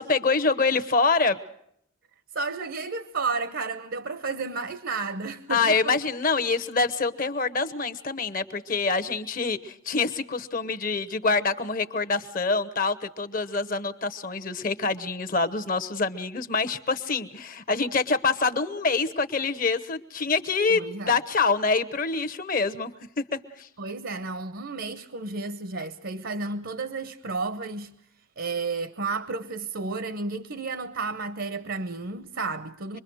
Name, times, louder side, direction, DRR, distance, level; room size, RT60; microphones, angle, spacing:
voice 1, 0.0-1.4 5.5-22.9 23.3-23.7, left 4 dB, 40° left, 1.0 m, -26 dB
voice 2, 2.3-6.0 20.7-21.2 23.8-27.9 28.4-33.0, right 4 dB, 60° right, 0.9 m, -32 dB
25.5 x 21.5 x 6.3 m
head